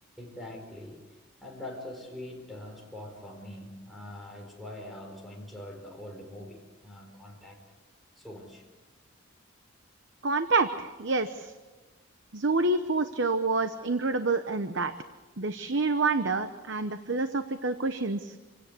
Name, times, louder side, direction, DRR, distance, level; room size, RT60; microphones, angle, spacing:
voice 1, 0.2-7.6 8.2-8.7, left 1 dB, ahead, 1 dB, 5.1 m, -43 dB
voice 2, 10.2-11.5 12.3-14.9 15.4-18.4, right 3 dB, 60° right, 9 dB, 1.0 m, -27 dB
27.0 x 17.0 x 8.3 m, 1.3 s
head